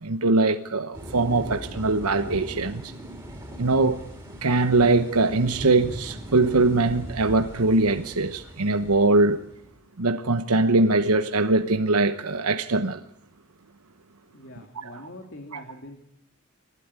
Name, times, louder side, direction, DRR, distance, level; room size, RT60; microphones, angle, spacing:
voice 1, 0.0-2.9 3.6-4.0 4.4-9.4 10.0-13.0 14.8-15.0 15.5-15.6, right 3 dB, 85° right, 1.0 m, -22 dB
sound 1, 0.9-9.8, equal, 10° right, 4.4 m, -40 dB
voice 2, 14.3-16.0, left 1 dB, 55° left, 2.5 m, -43 dB
29.0 x 12.5 x 9.7 m
head